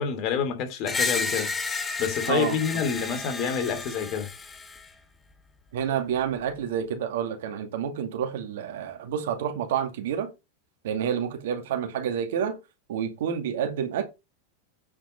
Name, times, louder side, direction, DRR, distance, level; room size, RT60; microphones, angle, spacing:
voice 1, 0.0-1.5 2.0-4.3, left 7 dB, 50° left, 2.7 m, -28 dB
Screech, 0.8-4.9, left 4 dB, 15° left, 1.5 m, -31 dB
voice 2, 2.3-2.9 5.7-10.3 10.8-12.6 12.9-14.0, right 8 dB, 70° right, 2.2 m, -29 dB
9.0 x 5.0 x 5.3 m
hypercardioid pair, 100°, 0 cm